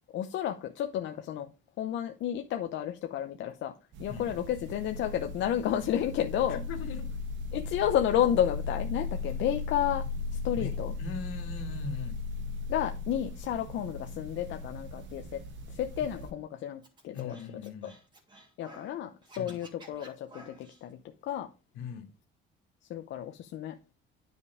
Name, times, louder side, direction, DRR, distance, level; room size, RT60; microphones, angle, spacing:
voice 1, 0.1-1.5 1.8-3.7 4.0-6.6 7.5-10.1 10.4-10.9 12.7-17.4 17.8-17.9 18.6-21.5 22.9-23.8, left 10 dB, 70° left, 0.8 m, -31 dB
sound 1, 3.9-16.3, left 3 dB, 70° right, 1.6 m, -37 dB
voice 2, 6.5-7.1 10.6-12.2 16.0-16.1 17.1-17.9 19.4-19.6 21.7-22.1, left 5 dB, 85° left, 2.1 m, -40 dB
Scratching (performance technique), 16.8-18.9 19.2-20.8, right 1 dB, 20° right, 2.6 m, -53 dB
9.6 x 5.3 x 4.8 m
cardioid pair, 120°, 20 cm